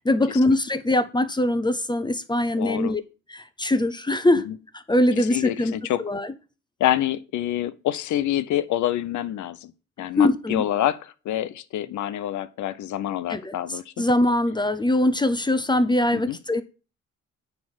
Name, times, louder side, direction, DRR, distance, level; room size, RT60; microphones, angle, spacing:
voice 1, 0.0-3.0 3.3-4.5 4.7-5.7 6.0-6.3 10.2-10.6 13.3-16.6, left 1 dB, 15° left, 0.6 m, -22 dB
voice 2, 2.6-2.9 4.5-4.6 5.3-6.0 6.8-9.7 10.0-14.0 16.1-16.4, left 12 dB, 75° left, 0.7 m, -27 dB
9.3 x 3.3 x 6.2 m
cardioid pair, 90°, 30 cm